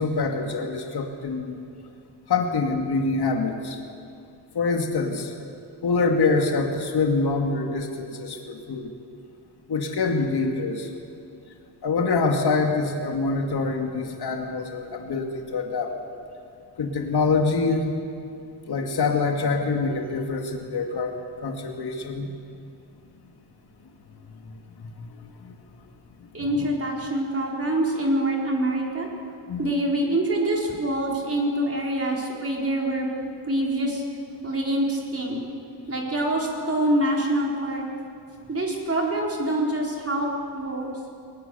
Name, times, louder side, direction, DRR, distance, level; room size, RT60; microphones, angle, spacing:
voice 1, 0.0-1.6 2.3-3.8 4.5-5.3 5.8-8.9 9.7-10.9 11.8-15.9 16.8-17.9 18.7-21.1 21.4-22.3 25.0-25.1 25.4-25.5 29.5-29.8, left 4 dB, 55° left, 2 dB, 2.5 m, -25 dB
voice 2, 26.3-29.1 29.6-34.0 34.4-35.4 35.9-37.9 38.5-40.9, right 1 dB, 30° right, -2 dB, 4.5 m, -25 dB
23.0 x 20.0 x 7.0 m, 2.4 s
wide cardioid pair, 115°, 45 cm